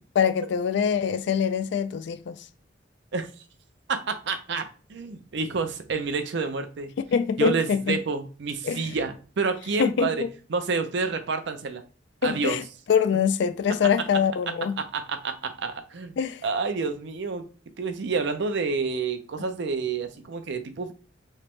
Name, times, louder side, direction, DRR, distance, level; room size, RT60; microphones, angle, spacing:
voice 1, 0.2-2.4 7.1-8.0 8.6-8.8 9.8-10.1 12.2-12.6 12.9-14.8 16.2-16.4, left 7 dB, 65° left, 0.3 m, -24 dB
voice 2, 3.9-6.9 7.4-11.8 12.2-12.6 14.8-17.5 17.8-20.9, right 4 dB, 65° right, 0.5 m, -29 dB
3.2 x 2.9 x 3.1 m
head